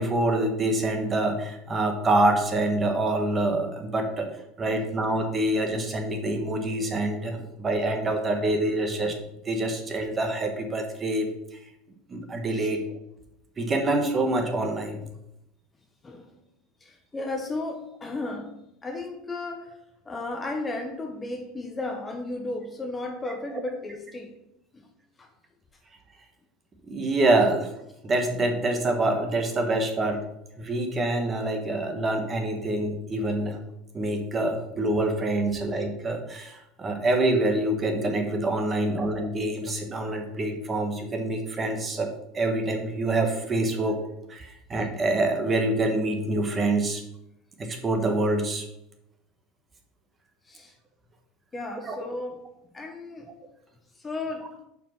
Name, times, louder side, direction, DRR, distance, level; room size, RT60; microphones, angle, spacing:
voice 1, 0.0-4.3 4.6-9.2 9.4-11.3 12.1-12.8 13.6-15.0 26.9-27.7 28.0-30.2 30.6-33.6 33.9-44.0 44.3-47.0 47.6-48.6 51.9-52.0, right 2 dB, 25° right, 1.2 m, -26 dB
voice 2, 16.8-18.5 18.8-19.8 20.1-24.3 24.7-24.9 25.2-25.3 38.7-38.8 50.5-50.7 51.5-52.4 52.7-53.3 54.0-54.5, left 2 dB, 15° left, 0.8 m, -34 dB
5.6 x 4.8 x 5.9 m
supercardioid pair, 130°, 0 cm